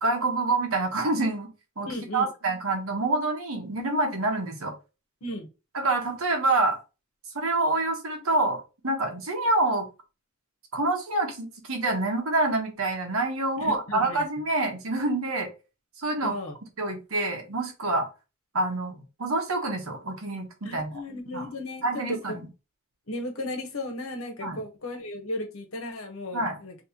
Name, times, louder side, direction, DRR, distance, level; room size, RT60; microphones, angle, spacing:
voice 1, 0.0-1.5 1.8-1.9 2.1-4.7 5.7-6.8 7.3-8.6 8.8-9.9 10.7-15.5 16.0-16.3 16.8-18.1 18.5-20.9 21.3-21.5 21.8-22.4 24.4-24.6 26.3-26.6, right 2 dB, 85° right, 3 dB, 1.2 m, -27 dB
voice 2, 1.9-2.3 5.2-5.5 13.6-14.2 16.2-16.5 20.6-22.4 23.1-26.7, left 1 dB, 85° left, 5 dB, 1.1 m, -35 dB
3.1 x 2.9 x 4.3 m, 0.29 s
head